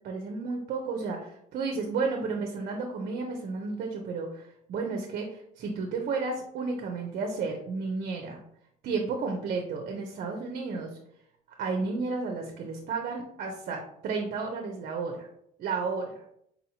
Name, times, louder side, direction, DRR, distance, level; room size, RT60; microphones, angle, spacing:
voice 1, 0.0-8.4 8.8-10.9 11.6-15.3 15.6-16.2, right 4 dB, 55° right, 2 dB, 0.6 m, -32 dB
4.1 x 2.8 x 2.7 m, 0.72 s
cardioid pair, 110°, 17 cm